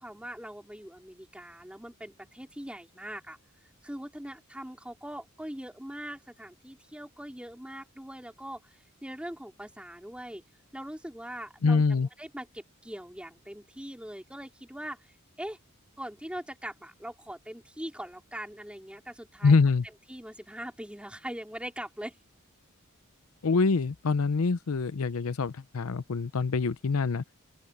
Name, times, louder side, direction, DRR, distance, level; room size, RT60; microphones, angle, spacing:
voice 1, 0.0-3.4 3.8-10.4 10.7-11.8 12.2-15.6 16.0-19.6 20.1-22.2, right 1 dB, 5° right, 3.6 m, -41 dB
voice 2, 11.6-12.1 19.4-19.8 23.4-27.2, left 4 dB, 70° left, 0.6 m, -25 dB
open air
head